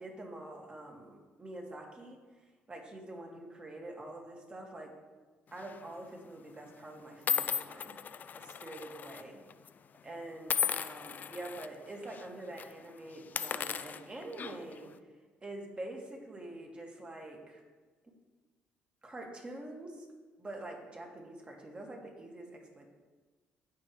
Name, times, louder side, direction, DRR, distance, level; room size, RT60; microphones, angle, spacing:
voice 1, 0.0-5.0 5.5-8.0 8.3-9.4 10.0-15.0 15.4-17.6 18.0-18.1 19.0-20.1 20.4-22.9, right 1 dB, 25° right, 0 dB, 2.1 m, -46 dB
sound 1, 5.6-5.9 6.6-6.7 7.3-9.2 9.5-9.7 10.5-11.7 12.1-12.3 12.5-12.7 13.2-14.8, left 7 dB, 45° left, 0.4 m, -35 dB
16.0 x 5.7 x 3.3 m, 1.3 s
supercardioid pair, 80°, 4 cm